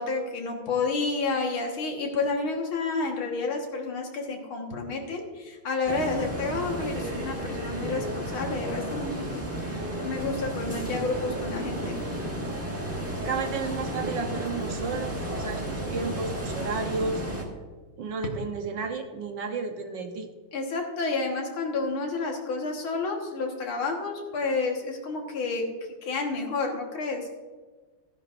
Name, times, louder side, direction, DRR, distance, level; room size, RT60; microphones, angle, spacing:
voice 1, 0.0-12.0 20.5-25.7 26.0-27.3, left 3 dB, 75° left, 1 dB, 2.3 m, -30 dB
sound 1, 5.9-17.4, right 1 dB, 10° right, 1.3 m, -33 dB
voice 2, 13.1-17.4 18.0-20.3, right 4 dB, 65° right, 5 dB, 1.5 m, -32 dB
15.5 x 10.5 x 2.5 m, 1.4 s
omnidirectional pair, 2.3 m